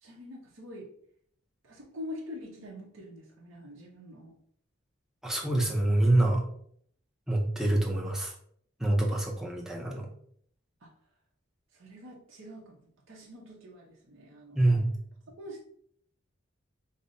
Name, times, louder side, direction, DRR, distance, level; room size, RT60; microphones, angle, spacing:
voice 1, 0.0-0.9 1.6-4.4 10.8-10.9 11.7-14.7 15.4-15.6, left 1 dB, 70° right, -2 dB, 0.7 m, -45 dB
voice 2, 5.2-6.4 7.3-8.3 8.8-10.1 14.5-14.9, right 1 dB, ahead, -2 dB, 0.5 m, -26 dB
5.2 x 2.0 x 2.6 m, 0.64 s
head